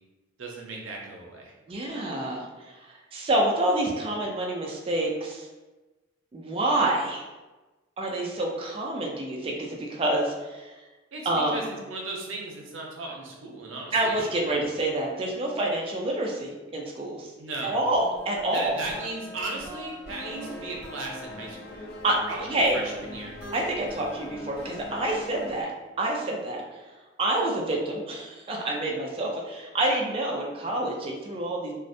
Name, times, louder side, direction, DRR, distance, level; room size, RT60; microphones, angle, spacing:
voice 1, 0.4-1.5 11.1-14.6 17.4-17.8 18.5-21.8 22.3-23.3, right 2 dB, 80° right, -1 dB, 0.5 m, -36 dB
voice 2, 1.7-5.5 6.3-7.2 8.0-10.8 11.3-11.6 13.9-17.3 17.6-18.8 20.3-20.5 22.0-22.2 22.5-22.8 23.5-25.7 26.0-26.6 27.2-31.7, right 1 dB, 30° right, -1 dB, 0.3 m, -27 dB
sound 1, 17.9-25.5, equal, 10° left, 0.7 m, -45 dB
sound 2, 20.1-25.6, left 3 dB, 50° left, 0.3 m, -43 dB
2.4 x 2.1 x 2.6 m, 1.2 s
head